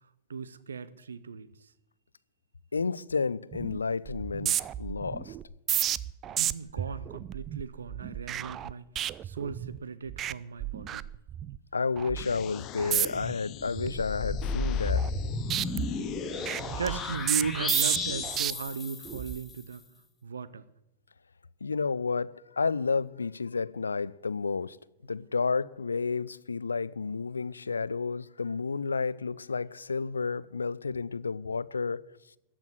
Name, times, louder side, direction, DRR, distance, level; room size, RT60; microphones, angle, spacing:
voice 1, 0.3-1.5 6.4-8.9 9.2-11.0 16.8-19.9 20.2-20.6, right 5 dB, 70° right, 0.7 m, -37 dB
voice 2, 2.7-5.3 11.7-15.1 21.6-24.8 25.0-32.0, left 4 dB, 75° left, 0.4 m, -31 dB
sound 1, 3.5-3.8 4.1-9.8 10.1-10.3 10.6-11.6 12.0-12.2 12.8-13.3 13.7-15.2 15.5-18.5 19.1-19.4, right 11 dB, 30° right, 0.4 m, -32 dB
sound 2, 12.2-17.2, left 11 dB, 35° left, 0.8 m, -44 dB
sound 3, 13.8-19.6, left 4 dB, 20° left, 2.0 m, -33 dB
14.0 x 6.0 x 9.4 m
figure-of-eight pair, 90°, 0 cm